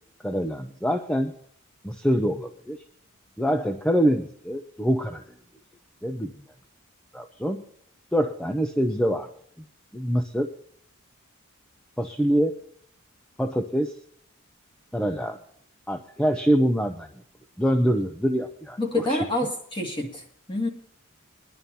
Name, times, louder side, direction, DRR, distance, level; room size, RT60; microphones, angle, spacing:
voice 1, 0.2-1.3 1.8-2.8 3.4-5.2 6.0-6.3 7.1-7.6 8.1-9.3 9.9-10.5 12.0-12.6 13.4-13.9 14.9-15.4 15.9-17.1 17.6-18.8 19.1-19.2, equal, 5° left, 6 dB, 0.6 m, -24 dB
voice 2, 18.8-20.2 20.5-20.7, left 2 dB, 25° left, 0 dB, 2.2 m, -27 dB
21.0 x 11.0 x 2.8 m, 0.65 s
head